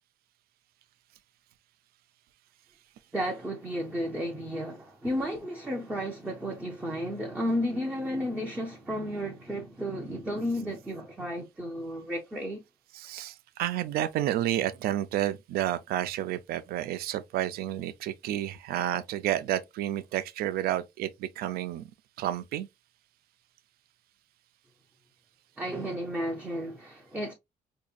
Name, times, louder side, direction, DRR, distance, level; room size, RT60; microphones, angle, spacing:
voice 1, 3.1-12.6 25.6-27.3, equal, 10° right, 0.4 m, -33 dB
voice 2, 12.9-21.9 22.2-22.7, right 12 dB, 75° right, 0.4 m, -30 dB
5.0 x 2.7 x 2.3 m
cardioid pair, 180°, 16 cm